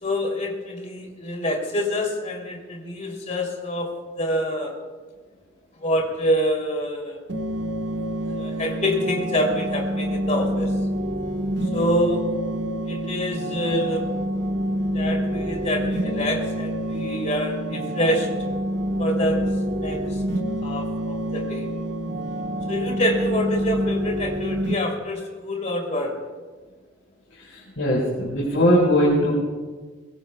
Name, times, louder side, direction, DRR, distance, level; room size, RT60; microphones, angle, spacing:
voice 1, 0.0-3.9 4.2-4.7 5.8-7.2 8.3-10.7 11.7-12.2 12.9-14.0 14.9-18.3 19.0-19.4 19.8-20.0 20.6-21.7 22.7-26.2, equal, 40° left, 1 dB, 2.9 m, -26 dB
sound 1, 7.3-24.7, equal, 60° right, 1.3 m, -27 dB
voice 2, 27.3-29.3, equal, 75° left, -5 dB, 4.5 m, -20 dB
23.0 x 21.0 x 2.3 m, 1.4 s
head